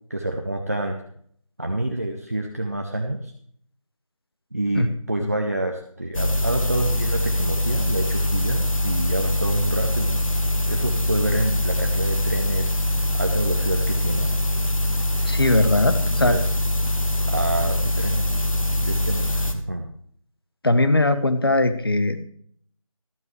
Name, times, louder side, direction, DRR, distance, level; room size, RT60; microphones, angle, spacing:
voice 1, 0.1-1.0 1.6-3.3 4.5-10.3 10.7-12.8 13.1-14.3 16.2-16.5 17.3-18.2 18.7-19.9, right 1 dB, 25° right, 2 dB, 0.7 m, -27 dB
sound 1, 6.1-19.5, left 1 dB, 70° left, 1.6 m, -23 dB
voice 2, 15.3-16.4 20.6-22.2, left 2 dB, 45° left, 10 dB, 1.1 m, -20 dB
13.5 x 12.5 x 3.2 m, 0.63 s
figure-of-eight pair, 170°, 18 cm